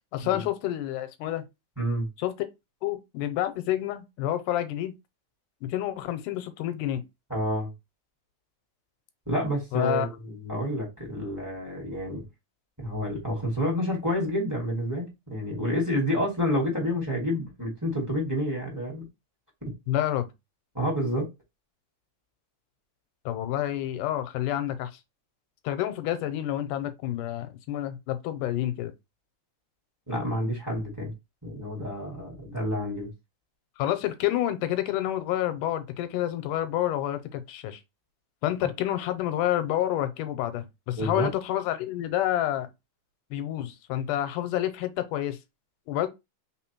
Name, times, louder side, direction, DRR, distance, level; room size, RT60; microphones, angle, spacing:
voice 1, 0.1-1.4 2.2-2.3 2.8-4.9 5.6-7.0 9.7-10.1 19.9-20.3 23.3-24.9 25.7-28.9 33.8-37.8 38.4-42.7 43.3-45.4 45.9-46.1, left 12 dB, 90° left, 2.2 m, -29 dB
voice 2, 1.8-2.1 7.3-7.7 9.3-12.2 12.8-19.0 20.7-21.3 30.1-31.1 31.4-33.1 40.9-41.3, equal, 10° right, 1.2 m, -29 dB
4.2 x 3.9 x 2.9 m
omnidirectional pair, 3.7 m